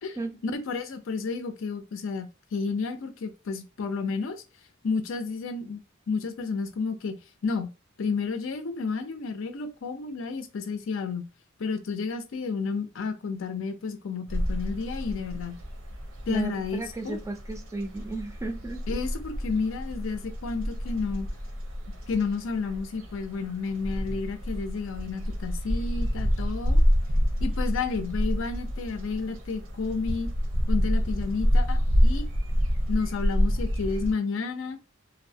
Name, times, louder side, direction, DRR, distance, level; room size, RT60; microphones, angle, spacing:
voice 1, 0.4-2.3 2.5-4.4 4.8-5.8 6.1-7.2 7.4-7.7 8.0-11.3 11.6-15.6 16.3-17.2 18.9-21.3 22.1-26.8 27.4-30.3 30.7-32.2 32.9-34.8, left 4 dB, 70° left, 0.5 m, -31 dB
sound 1, 14.3-34.1, equal, 90° right, 0.7 m, -28 dB
voice 2, 16.3-19.0, right 2 dB, 15° right, 0.4 m, -34 dB
2.6 x 2.0 x 2.6 m
head